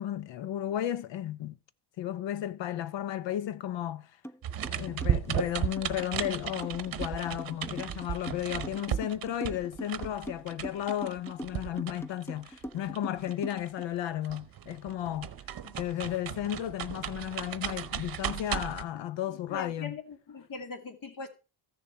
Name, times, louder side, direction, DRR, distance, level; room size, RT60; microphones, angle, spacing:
voice 1, 0.0-1.6 2.0-4.1 4.6-15.3 15.8-20.0, left 11 dB, 75° left, 0.8 m, -34 dB
sound 1, 4.2-4.4 4.6-13.8, equal, 5° left, 0.5 m, -42 dB
sound 2, 4.4-14.0 14.2-18.8, right 10 dB, 50° right, 0.9 m, -35 dB
voice 2, 18.9-21.3, left 4 dB, 50° left, 2.1 m, -42 dB
14.0 x 6.7 x 4.3 m
cardioid pair, 120°, 45 cm